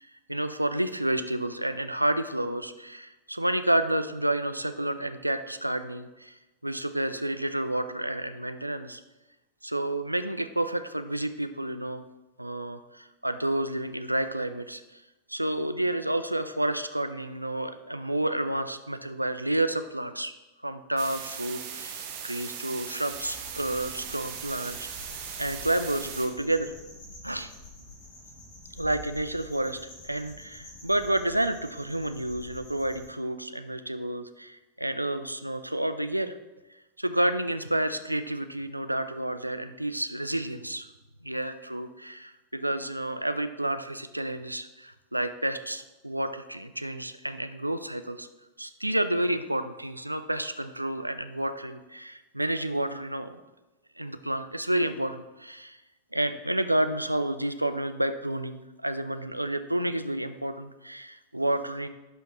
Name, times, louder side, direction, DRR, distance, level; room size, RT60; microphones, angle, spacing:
voice 1, 0.0-6.3 6.6-9.0 9.6-12.0 12.4-15.0 15.3-20.3 20.6-25.1 25.4-26.7 27.2-27.5 28.7-36.4 37.0-40.9 41.2-48.3 48.6-53.4 54.0-55.8 56.1-61.9, right 1 dB, 85° right, 10 dB, 0.4 m, -30 dB
sound 1, 21.0-26.3, right 8 dB, 50° right, 1.1 m, -39 dB
sound 2, 23.1-33.1, left 1 dB, 40° left, 2.9 m, -47 dB
11.0 x 5.7 x 3.0 m, 1.1 s
figure-of-eight pair, 90°, 0 cm